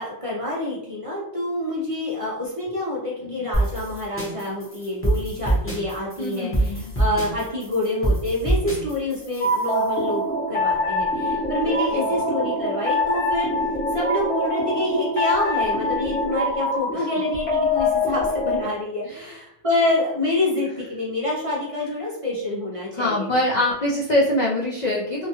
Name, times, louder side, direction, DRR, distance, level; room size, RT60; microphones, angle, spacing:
voice 1, 0.0-13.5 13.9-23.3, left 2 dB, 55° right, -4 dB, 0.3 m, -27 dB
sound 1, 3.5-9.9, right 2 dB, 10° left, 0.8 m, -25 dB
voice 2, 6.2-6.9 11.7-12.2 17.0-17.1 19.0-19.4 23.0-25.3, left 1 dB, 85° left, -4 dB, 0.3 m, -24 dB
sound 2, 9.4-18.6, left 1 dB, 55° left, 1.3 m, -24 dB
2.8 x 2.3 x 2.8 m, 0.83 s
omnidirectional pair, 1.3 m